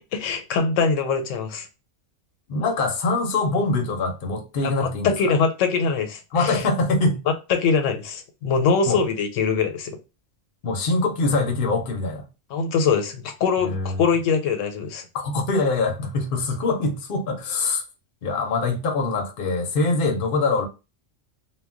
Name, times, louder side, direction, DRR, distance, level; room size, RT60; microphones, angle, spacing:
voice 1, 0.1-1.7 4.6-6.7 7.5-10.0 12.5-15.0, left 5 dB, 85° left, 0.9 m, -23 dB
voice 2, 2.5-5.3 6.3-7.2 8.8-9.0 10.6-12.3 13.6-14.0 15.1-17.8 18.2-20.7, left 3 dB, 55° left, 0.7 m, -24 dB
2.2 x 2.1 x 3.6 m
omnidirectional pair, 1.3 m